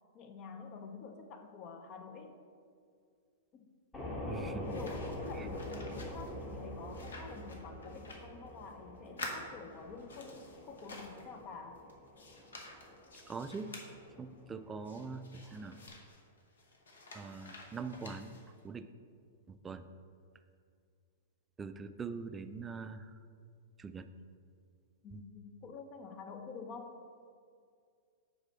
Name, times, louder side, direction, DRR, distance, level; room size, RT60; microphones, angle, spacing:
voice 1, 0.1-2.4 3.5-3.7 4.3-11.8 25.0-27.0, left 5 dB, 35° left, 6 dB, 0.5 m, -48 dB
sound 1, 3.9-15.9, left 1 dB, 20° left, 1.1 m, -45 dB
voice 2, 4.2-4.8 5.4-5.5 13.3-13.7 14.2-15.8 17.1-18.4 18.6-18.9 19.5-19.9 21.6-23.1 23.8-24.1 25.1-25.2, right 4 dB, 15° right, 10 dB, 0.3 m, -43 dB
sound 2, 4.6-8.8 9.0-11.4 11.7-13.9 14.8-18.6, left 2 dB, 75° left, 0.9 m, -50 dB
4.9 x 4.2 x 5.5 m, 2.2 s
figure-of-eight pair, 105°, 0 cm